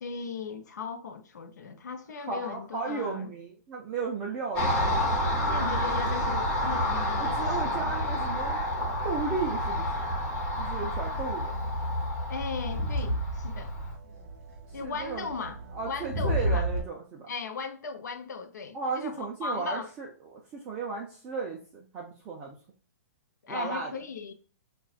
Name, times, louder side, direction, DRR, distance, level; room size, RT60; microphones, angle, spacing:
voice 1, 0.0-3.3 5.5-7.3 7.7-7.8 12.3-13.7 14.7-15.6 15.9-16.7 17.3-19.9 23.4-24.3, left 5 dB, 80° left, 0.7 m, -37 dB
voice 2, 2.2-5.0 7.2-8.6 9.0-10.1 10.6-11.6 14.7-15.3 15.7-17.3 18.7-22.6 23.5-23.9, right 4 dB, 15° right, 0.4 m, -35 dB
Car passing by, 4.6-13.9, left 1 dB, 20° left, 0.9 m, -29 dB
Crowd, 6.1-16.8, right 1 dB, 40° right, 2.0 m, -36 dB
5.8 x 2.3 x 2.4 m
hypercardioid pair, 170°, 9 cm